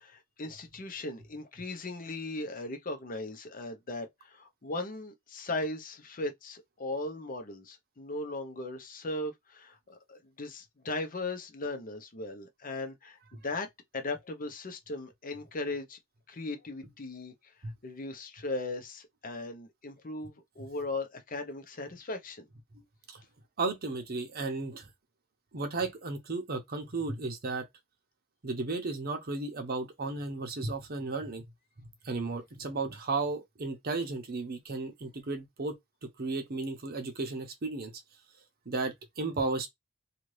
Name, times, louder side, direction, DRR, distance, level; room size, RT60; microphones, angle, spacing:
voice 1, 0.0-13.7 13.9-16.0 16.3-17.5 17.8-22.5, left 2 dB, 40° left, 0.7 m, -38 dB
voice 2, 23.6-24.9 25.5-27.7 28.4-31.4 32.0-35.8 36.2-37.9 38.7-39.7, right 3 dB, 45° right, 0.8 m, -34 dB
2.7 x 2.5 x 3.2 m
head